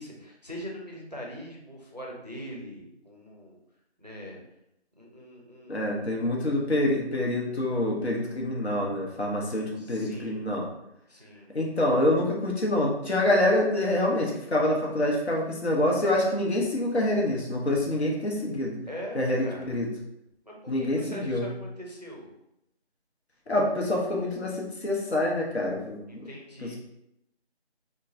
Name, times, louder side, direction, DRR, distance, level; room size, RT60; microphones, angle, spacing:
voice 1, 0.0-3.6 4.0-4.4 5.0-6.0 9.8-10.4 11.1-11.5 18.9-19.8 20.5-22.3 26.1-26.7, equal, 40° right, -2 dB, 0.5 m, -42 dB
voice 2, 5.7-10.7 11.5-18.8 19.1-19.9 20.7-21.5 23.5-26.3 26.6-26.8, left 1 dB, 70° left, -2 dB, 0.9 m, -26 dB
3.0 x 2.2 x 2.5 m, 0.82 s
figure-of-eight pair, 175°, 33 cm